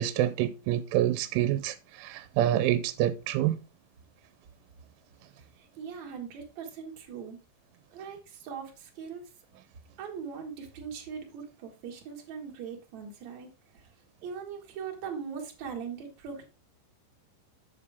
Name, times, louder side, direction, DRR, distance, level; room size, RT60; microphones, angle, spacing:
voice 1, 0.0-3.6, right 12 dB, 85° right, 3.0 m, -27 dB
voice 2, 5.4-7.4 7.9-9.2 10.0-13.5 13.7-13.9 14.2-16.4, right 6 dB, 60° right, 2.0 m, -40 dB
8.1 x 7.3 x 3.4 m
omnidirectional pair, 5.6 m